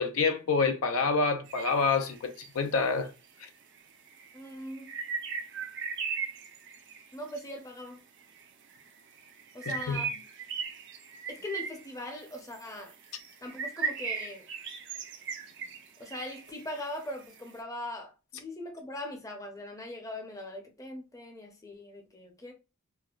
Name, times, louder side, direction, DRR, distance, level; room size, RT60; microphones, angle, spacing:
voice 1, 0.0-3.1 9.7-10.0, left 4 dB, 75° left, 0.5 m, -27 dB
sound 1, 1.5-2.5 3.4-3.5 3.8-7.4 8.2-8.4 8.7-17.4, right 5 dB, 60° right, 0.6 m, -38 dB
voice 2, 4.3-4.9 7.1-8.0 9.5-10.2 11.3-12.9 13.4-14.5 16.0-22.5, left 1 dB, 15° left, 0.6 m, -41 dB
4.2 x 2.0 x 2.3 m
head